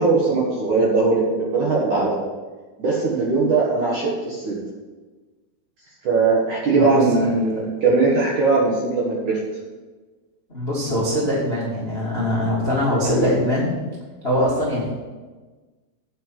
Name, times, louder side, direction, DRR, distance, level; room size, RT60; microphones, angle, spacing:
voice 1, 0.0-2.2 2.8-4.6 6.0-9.4 13.0-13.4, right 3 dB, 60° right, -5 dB, 2.2 m, -20 dB
voice 2, 6.8-7.3 10.5-13.7 14.2-14.9, equal, 30° left, -6 dB, 1.0 m, -22 dB
9.7 x 5.8 x 7.6 m, 1.3 s
omnidirectional pair, 5.7 m